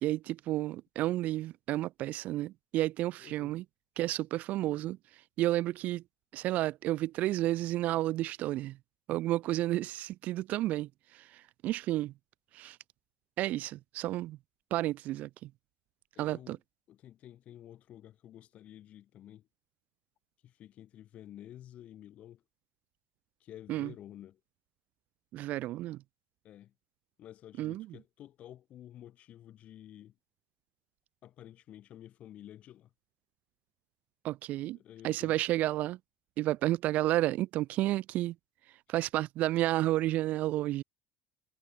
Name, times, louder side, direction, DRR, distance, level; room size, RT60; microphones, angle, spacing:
voice 1, 0.0-3.6 4.0-5.0 5.4-6.0 6.3-8.8 9.1-12.1 12.5-12.8 13.4-14.4 14.7-15.5 16.2-16.6 23.7-23.9 25.3-26.0 27.6-27.9 34.2-34.8 35.0-36.0 36.4-38.3 38.9-40.8, right 15 dB, 45° right, 0.5 m, -31 dB
voice 2, 3.2-3.5 14.1-14.2 16.2-16.6 16.9-19.5 20.4-22.4 23.4-24.4 26.4-26.7 27.2-30.2 31.2-32.9 34.7-35.4, left 12 dB, 35° left, 5.2 m, -51 dB
cardioid pair, 165°, 4 cm